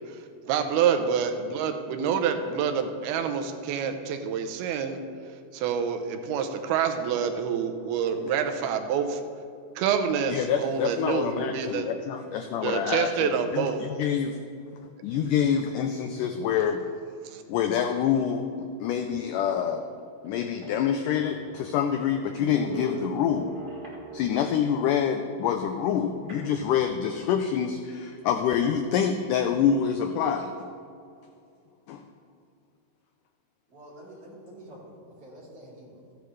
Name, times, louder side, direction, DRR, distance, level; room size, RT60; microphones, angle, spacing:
voice 1, 0.5-5.0 5.5-9.2 9.8-11.9 12.6-13.8 17.3-17.4, right 7 dB, 90° right, 7 dB, 2.7 m, -27 dB
voice 2, 8.1-8.9 12.1-12.8 33.7-36.1, equal, 40° right, -7 dB, 3.9 m, -48 dB
voice 3, 10.3-14.4 15.0-16.8 17.5-19.8 20.2-23.5 24.1-30.7 31.9-32.0, left 8 dB, 85° left, 6 dB, 1.8 m, -26 dB
sound 1, 20.2-20.3 20.5-24.6 26.3-27.4, right 2 dB, 60° right, 0.5 m, -42 dB
14.5 x 10.0 x 3.2 m, 2.4 s
omnidirectional pair, 4.3 m